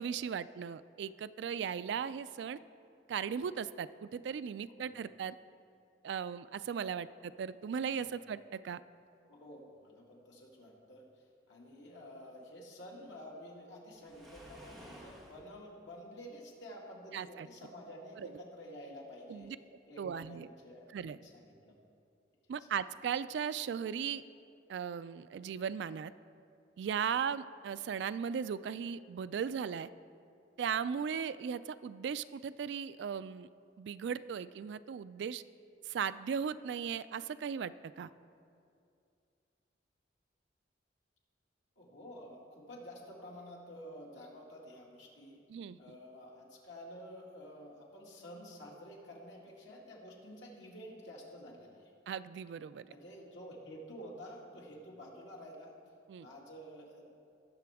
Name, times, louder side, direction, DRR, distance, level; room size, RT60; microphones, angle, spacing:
voice 1, 0.0-2.6 3.1-5.4 6.0-8.8 17.1-17.5 19.3-19.6 20.0-20.5 20.9-21.2 22.5-24.2 24.7-26.1 26.8-29.9 30.6-33.5 33.8-35.4 35.9-38.1 45.5-45.8 52.1-52.8 56.1-56.3, right 7 dB, 70° right, 15 dB, 0.3 m, -37 dB
voice 2, 9.3-19.5 19.9-21.7 22.6-22.7 41.8-45.4 45.8-51.9 52.9-55.8 56.2-57.1, equal, 90° left, -3 dB, 2.1 m, -50 dB
Waves surf, 14.0-15.5, right 1 dB, ahead, 1.4 m, -53 dB
19.0 x 6.7 x 3.5 m, 2.4 s
head